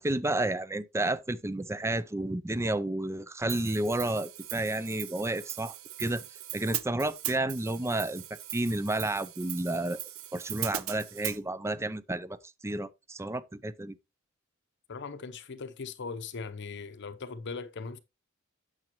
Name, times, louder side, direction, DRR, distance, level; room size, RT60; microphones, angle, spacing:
voice 1, 0.0-6.2 6.5-8.2 8.5-10.0 10.3-12.4 12.6-14.0, right 2 dB, 15° right, 0.4 m, -31 dB
Hi-hat, 3.5-11.4, right 13 dB, 70° right, 0.7 m, -39 dB
voice 2, 14.9-18.0, left 4 dB, 55° left, 0.7 m, -39 dB
9.0 x 7.1 x 3.0 m
head